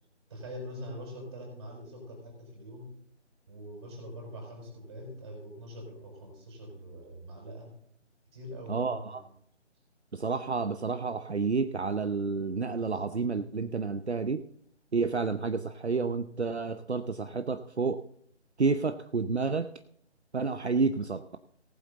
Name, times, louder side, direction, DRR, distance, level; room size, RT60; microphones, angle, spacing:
voice 1, 0.3-2.9 3.5-7.7 8.3-9.2, equal, 25° right, 0 dB, 5.0 m, -43 dB
voice 2, 8.7-9.2 10.1-14.4 14.9-18.0 18.6-19.7 20.3-21.4, right 4 dB, 65° right, 10 dB, 0.8 m, -30 dB
18.5 x 7.9 x 3.9 m, 0.66 s
figure-of-eight pair, 160°, 36 cm